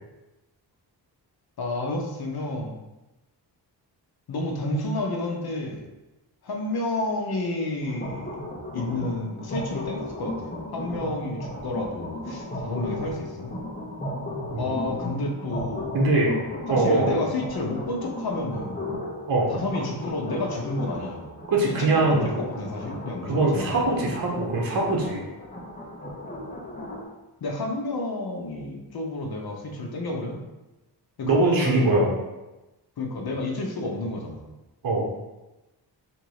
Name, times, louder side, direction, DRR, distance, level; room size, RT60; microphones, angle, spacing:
voice 1, 1.6-2.8 4.3-5.8 6.4-8.4 8.7-13.6 14.6-15.9 16.7-18.9 19.5-21.3 21.7-24.0 27.4-30.4 31.2-31.9 33.0-34.4, left 2 dB, 60° left, 1 dB, 1.0 m, -30 dB
sound 1, 7.8-27.0, left 1 dB, 20° left, 1.0 m, -35 dB
voice 2, 15.9-16.3 16.7-17.2 19.3-19.5 21.5-22.3 23.3-25.2 31.2-32.1 34.8-35.1, right 2 dB, 50° right, -2 dB, 1.1 m, -22 dB
3.8 x 2.8 x 4.7 m, 1.0 s
cardioid pair, 105°, 42 cm